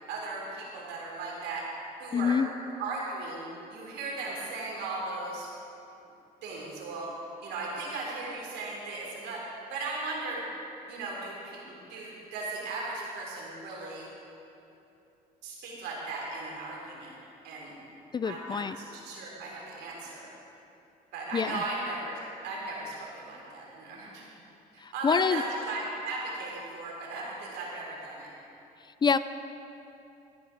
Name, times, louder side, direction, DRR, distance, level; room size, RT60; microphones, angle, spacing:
voice 1, 0.1-1.7 2.0-2.4 2.8-3.4 3.7-5.5 6.4-7.1 7.4-10.4 10.9-14.1 15.4-17.2 17.4-17.8 18.2-18.6 18.9-20.3 21.1-22.2 22.4-24.3 24.7-28.3, right 3 dB, 85° right, -3 dB, 3.5 m, -37 dB
voice 2, 2.1-2.5 18.1-18.8 21.3-21.6 24.8-25.4 29.0-29.2, left 6 dB, 25° left, 13 dB, 0.4 m, -26 dB
14.0 x 10.0 x 5.0 m, 2.8 s
cardioid pair, 110°, 17 cm